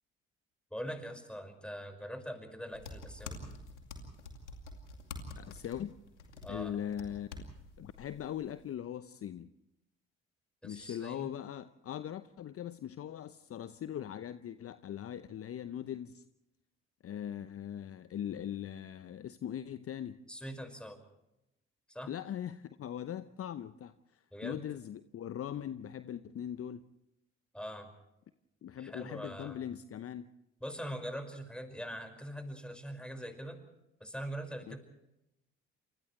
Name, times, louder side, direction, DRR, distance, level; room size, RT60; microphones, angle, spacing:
voice 1, 0.7-3.4 6.4-6.8 10.6-11.3 20.3-21.0 21.9-22.1 24.3-24.6 27.5-27.9 28.8-29.6 30.6-33.7 34.0-34.8, equal, 5° left, 5 dB, 5.5 m, -42 dB
sound 1, 2.7-8.7, left 2 dB, 85° left, 2.5 m, -47 dB
voice 2, 5.4-6.0 6.5-7.3 7.8-9.5 10.6-16.2 17.0-20.2 22.1-26.8 28.6-30.3 34.7-34.8, left 10 dB, 40° left, 13 dB, 0.8 m, -40 dB
29.5 x 27.5 x 3.3 m, 0.90 s
figure-of-eight pair, 50°, 34 cm